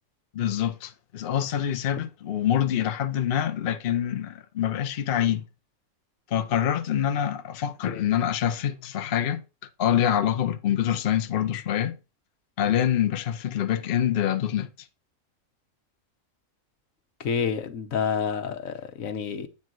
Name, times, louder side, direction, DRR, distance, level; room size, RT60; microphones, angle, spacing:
voice 1, 0.3-5.4 6.3-9.4 9.8-11.9 12.6-14.7, left 10 dB, 50° left, 0.8 m, -25 dB
voice 2, 17.2-19.5, left 6 dB, 75° left, 1.3 m, -29 dB
8.5 x 3.9 x 6.1 m
omnidirectional pair, 1.5 m